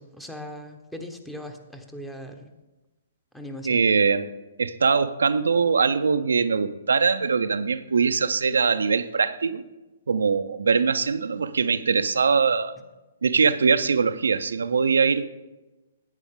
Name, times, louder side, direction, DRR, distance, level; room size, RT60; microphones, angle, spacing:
voice 1, 0.0-2.5 3.3-3.8, equal, 5° left, 5 dB, 0.9 m, -39 dB
voice 2, 3.6-4.3 4.6-9.6 10.1-12.7 13.2-15.2, right 5 dB, 85° right, 10 dB, 0.5 m, -22 dB
10.5 x 9.1 x 3.6 m, 1.1 s
hypercardioid pair, 135°, 0 cm